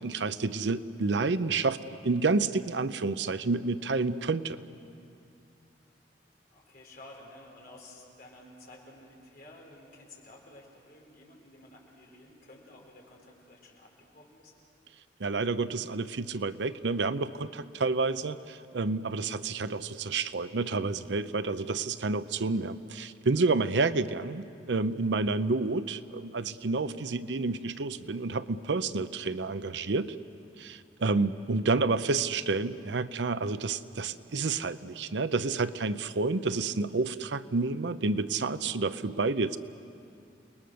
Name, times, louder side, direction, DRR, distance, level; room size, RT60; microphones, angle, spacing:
voice 1, 0.0-4.6 15.2-30.2 30.6-39.6, right 3 dB, 75° right, 13 dB, 0.7 m, -29 dB
voice 2, 6.5-14.5, left 1 dB, 55° left, -1 dB, 4.6 m, -52 dB
29.5 x 20.0 x 6.5 m, 2.5 s
head